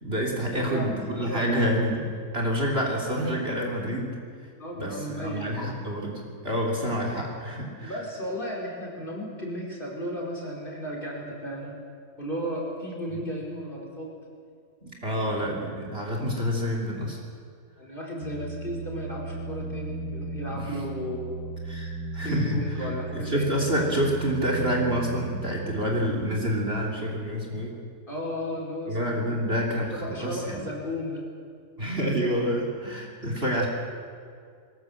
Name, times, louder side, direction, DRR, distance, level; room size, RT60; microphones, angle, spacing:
voice 1, 0.0-4.2 4.7-7.9 14.8-17.2 20.6-20.7 21.7-22.9 23.1-27.7 28.9-29.9 30.2-30.6 31.8-33.7, equal, 35° right, 0 dB, 3.4 m, -28 dB
voice 2, 0.5-1.6 4.6-5.6 7.8-11.7 12.2-14.1 15.0-15.6 17.8-21.5 22.2-23.6 28.1-31.3, equal, 30° left, -2 dB, 5.0 m, -34 dB
sound 1, 18.2-26.8, right 2 dB, 55° left, 3.5 m, -36 dB
22.5 x 20.0 x 7.9 m, 2.2 s
omnidirectional pair, 1.8 m